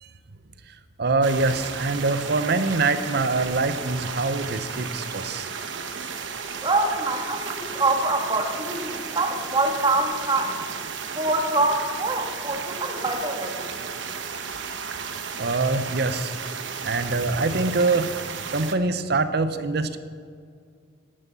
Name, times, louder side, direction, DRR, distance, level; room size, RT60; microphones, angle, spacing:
voice 1, 0.7-5.5 15.4-16.3 16.8-18.1 18.5-20.0, right 3 dB, 55° right, 11 dB, 0.8 m, -24 dB
sound 1, 1.2-18.7, right 6 dB, 70° right, 1.0 m, -34 dB
voice 2, 6.6-10.6 11.1-13.7, right 2 dB, 25° right, 2 dB, 1.6 m, -25 dB
11.5 x 9.9 x 7.0 m, 2.1 s
head